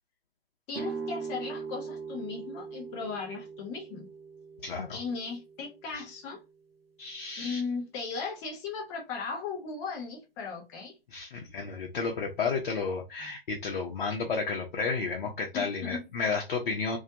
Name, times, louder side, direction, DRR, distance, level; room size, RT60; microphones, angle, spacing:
voice 1, 0.7-4.1 4.9-6.4 7.4-11.0 15.5-16.1, left 5 dB, 10° left, 0.3 m, -37 dB
sound 1, 0.7-6.5, right 5 dB, 80° right, 0.6 m, -41 dB
voice 2, 4.6-5.0 5.9-6.0 7.0-7.6 11.1-17.0, left 4 dB, 60° left, 0.6 m, -32 dB
2.3 x 2.0 x 2.7 m
figure-of-eight pair, 115°, 29 cm